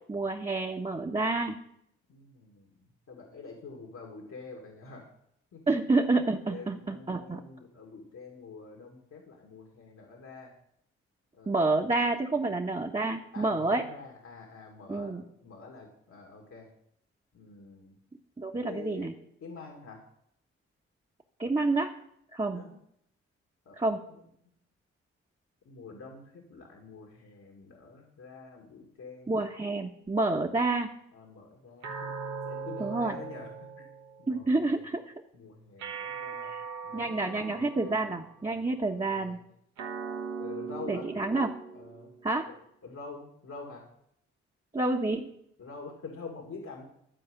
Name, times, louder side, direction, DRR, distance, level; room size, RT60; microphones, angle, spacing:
voice 1, 0.1-1.6 5.7-7.4 11.5-13.8 14.9-15.2 18.4-19.1 21.4-21.9 22.3-22.6 23.8-24.0 29.3-30.9 32.8-33.2 34.3-35.0 36.4-36.6 36.9-39.4 40.9-41.5 42.2-42.5 44.7-45.3, right 2 dB, 20° right, -1 dB, 1.4 m, -28 dB
voice 2, 2.1-2.7 3.1-5.1 5.5-5.8 6.5-10.5 11.4-11.8 13.3-15.1 15.4-16.7 17.3-18.0 18.6-19.1 19.4-20.0 22.5-22.7 23.7-23.8 24.1-24.2 25.7-29.3 31.1-32.1 32.5-33.5 33.8-33.9 34.2-34.8 35.3-36.5 36.8-38.0 39.0-39.4 40.4-41.1 41.7-42.1 42.4-42.5 42.8-43.9 45.6-46.8, left 4 dB, 65° left, 0 dB, 2.3 m, -46 dB
sound 1, 31.8-34.4 35.8-38.3 39.8-42.4, right 5 dB, 90° right, 1.4 m, -40 dB
12.5 x 4.8 x 8.1 m, 0.72 s
supercardioid pair, 40°, 29 cm